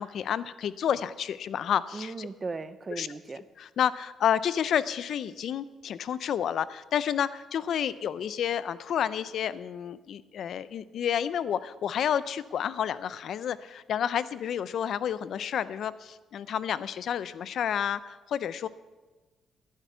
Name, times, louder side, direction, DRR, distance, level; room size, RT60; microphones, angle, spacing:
voice 1, 0.0-2.3 3.0-3.1 3.6-18.7, left 9 dB, 65° left, 16 dB, 0.5 m, -30 dB
voice 2, 1.9-3.4, right 3 dB, 30° right, 13 dB, 0.8 m, -37 dB
16.0 x 10.5 x 5.6 m, 1.2 s
cardioid pair, 90°, 0 cm